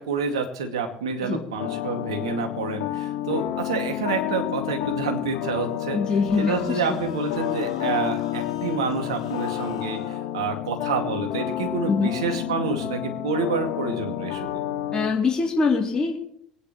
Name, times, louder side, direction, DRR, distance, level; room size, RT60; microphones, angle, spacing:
voice 1, 0.0-6.0 6.4-14.6, right 4 dB, 85° right, 4 dB, 2.3 m, -28 dB
sound 1, 1.6-15.1, left 12 dB, 75° left, 1.7 m, -30 dB
voice 2, 5.9-7.0 11.9-12.1 14.9-16.2, left 4 dB, 25° left, -2 dB, 3.3 m, -23 dB
sound 2, 6.2-10.2, left 8 dB, 90° left, 1.8 m, -43 dB
24.0 x 10.0 x 3.2 m, 0.65 s
hypercardioid pair, 65°, 3 cm